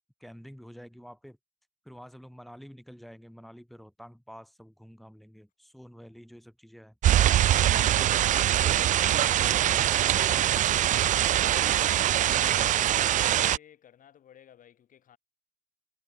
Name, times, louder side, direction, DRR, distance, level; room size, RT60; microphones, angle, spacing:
voice 1, 0.2-1.4 1.8-7.0 7.4-8.0 8.2-10.6 10.8-12.0 12.5-12.7, equal, ahead, 2.9 m, -48 dB
sound 1, 7.0-13.6, right 12 dB, 50° right, 0.4 m, -23 dB
voice 2, 11.5-15.2, left 10 dB, 50° left, 3.0 m, -55 dB
cardioid pair, 110°, 17 cm